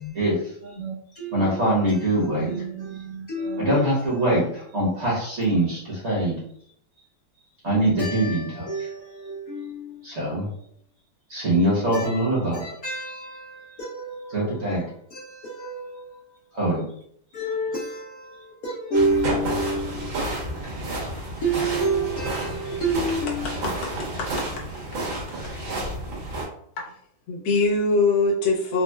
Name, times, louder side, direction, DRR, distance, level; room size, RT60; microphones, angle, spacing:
voice 1, 0.8-1.6 2.4-3.7 8.0-9.9 11.9-12.2 12.5-14.4 15.1-16.1 17.3-18.4 18.6-20.1 21.4-23.4, right 2 dB, 65° left, 0.9 m, -29 dB
voice 2, 1.3-2.5 3.6-6.4 7.6-8.6 10.0-10.5 11.3-12.7 14.3-14.8 16.5-16.8, right 1 dB, 45° right, 1.1 m, -23 dB
sound 1, 18.9-26.4, right 1 dB, 80° right, 1.8 m, -30 dB
voice 3, 23.1-23.9 24.2-24.4 26.8-26.9 27.3-28.8, left 3 dB, 90° left, 1.6 m, -23 dB
4.1 x 2.0 x 2.2 m
omnidirectional pair, 2.1 m